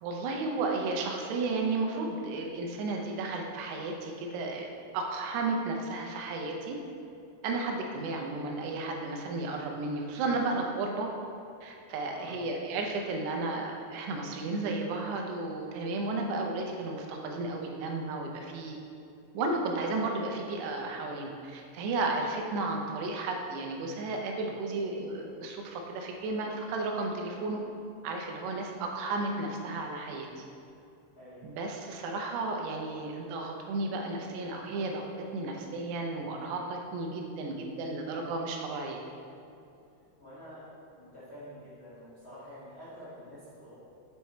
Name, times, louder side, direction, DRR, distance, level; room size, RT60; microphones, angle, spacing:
voice 1, 0.0-4.7 4.9-6.8 7.4-11.1 11.6-18.8 19.3-27.6 28.0-30.4 31.4-35.0 35.3-39.0, right 3 dB, 85° right, 2 dB, 2.9 m, -33 dB
voice 2, 12.0-12.4 31.1-31.5 40.2-40.6 40.9-43.7, equal, 85° left, -11 dB, 0.7 m, -48 dB
7.5 x 4.6 x 4.2 m, 2.7 s
omnidirectional pair, 4.7 m